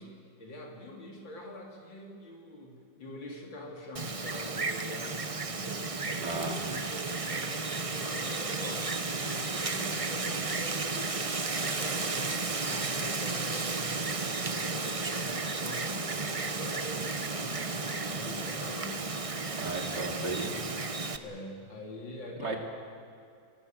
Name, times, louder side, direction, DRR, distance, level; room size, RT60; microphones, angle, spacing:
voice 1, 0.0-8.9 9.2-19.1 21.2-22.6, left 1 dB, 90° left, 0 dB, 3.9 m, -44 dB
Wind, 3.9-21.2, right 3 dB, 30° right, 0.7 m, -33 dB
voice 2, 6.2-6.5 19.6-20.5 22.4-22.6, right 3 dB, 65° right, 1 dB, 3.6 m, -34 dB
29.5 x 18.0 x 7.6 m, 2.4 s
omnidirectional pair, 2.0 m